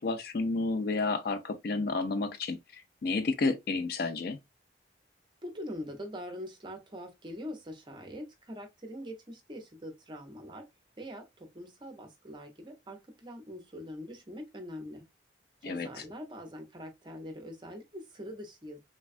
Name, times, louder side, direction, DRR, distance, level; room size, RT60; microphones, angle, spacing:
voice 1, 0.0-4.4 15.6-15.9, left 3 dB, 50° left, 0.4 m, -31 dB
voice 2, 5.4-10.6 11.0-15.0 15.6-18.8, equal, 25° right, 0.6 m, -43 dB
3.3 x 2.2 x 2.4 m
head